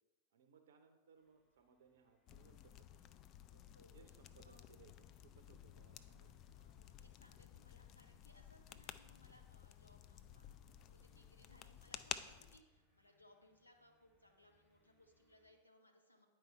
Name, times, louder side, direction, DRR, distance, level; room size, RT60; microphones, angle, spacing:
voice 1, 0.3-3.1 3.5-6.3, right 6 dB, 60° right, 7 dB, 0.6 m, -67 dB
sound 1, 1.2-15.5, left 2 dB, 10° left, 2.5 m, -80 dB
sound 2, 2.3-12.6, left 10 dB, 35° left, 0.3 m, -54 dB
voice 2, 6.2-16.3, left 1 dB, 85° left, 2 dB, 1.0 m, -68 dB
9.4 x 4.4 x 4.6 m, 1.2 s
figure-of-eight pair, 90°, 0 cm